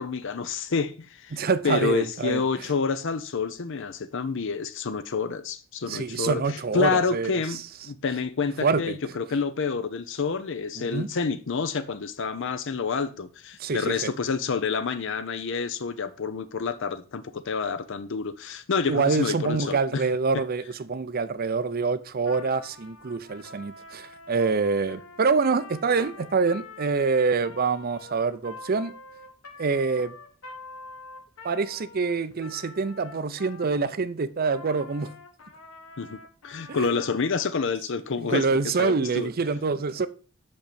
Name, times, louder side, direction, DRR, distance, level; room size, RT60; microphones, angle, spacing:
voice 1, 0.0-7.6 7.8-20.0 36.0-36.2 36.4-38.5 38.8-39.3, left 5 dB, 60° left, 0.6 m, -28 dB
voice 2, 1.3-2.4 5.8-7.4 8.6-9.0 10.8-11.1 13.6-14.1 18.9-28.9 29.6-30.1 31.4-35.1 36.8-37.0 38.2-40.1, right 4 dB, 45° right, 0.6 m, -26 dB
Trumpet, 22.2-33.9 34.4-37.4, left 3 dB, 90° left, 1.4 m, -46 dB
6.0 x 5.3 x 6.7 m
head